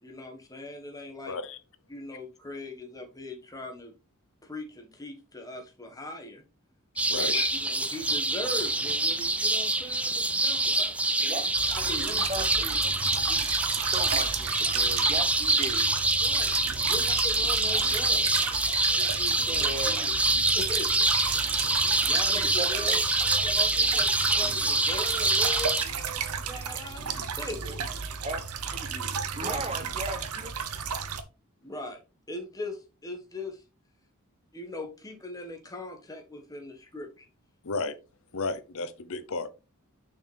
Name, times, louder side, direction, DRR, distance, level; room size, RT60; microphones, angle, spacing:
voice 1, 0.0-1.4 1.9-3.9 4.4-6.4 7.1-10.9 11.2-12.4 16.2-16.5 16.9-18.3 18.9-20.1 20.5-21.0 21.8-23.0 23.4-27.9 29.4-29.7 31.6-32.0 32.3-33.6 34.5-37.2, left 2 dB, 15° left, 1.5 m, -40 dB
voice 2, 1.3-1.6 7.1-7.5 37.6-37.9 38.3-39.5, left 4 dB, 65° left, 0.8 m, -32 dB
sound 1, 7.0-25.8, right 2 dB, 5° right, 0.4 m, -26 dB
sound 2, 11.5-31.2, right 7 dB, 90° right, 0.9 m, -33 dB
voice 3, 11.8-12.8 13.3-13.5 13.9-15.9 19.5-20.1 21.5-21.6 22.3-23.0 23.3-23.5 24.4-24.8 27.6-27.8 28.2-28.4 28.7-30.5, right 2 dB, 30° right, 1.1 m, -37 dB
6.5 x 6.2 x 3.4 m
head